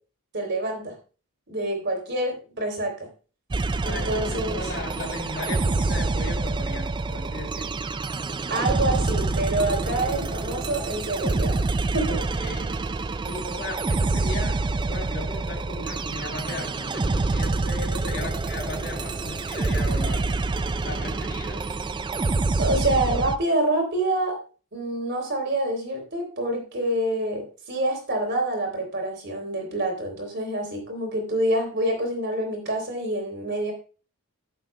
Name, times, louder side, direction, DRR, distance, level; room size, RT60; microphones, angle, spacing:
voice 1, 0.3-0.9 1.5-2.9 3.9-4.6 8.5-11.6 11.9-12.2 22.6-24.4 24.7-33.7, right 1 dB, 50° right, 2 dB, 3.4 m, -27 dB
sound 1, 3.5-23.4, right 3 dB, 20° right, 0.3 m, -27 dB
voice 2, 3.8-7.8 12.0-12.8 13.3-14.6 14.9-20.3 20.8-21.6, left 2 dB, 50° left, -4 dB, 3.3 m, -36 dB
15.0 x 7.3 x 2.2 m, 0.36 s
head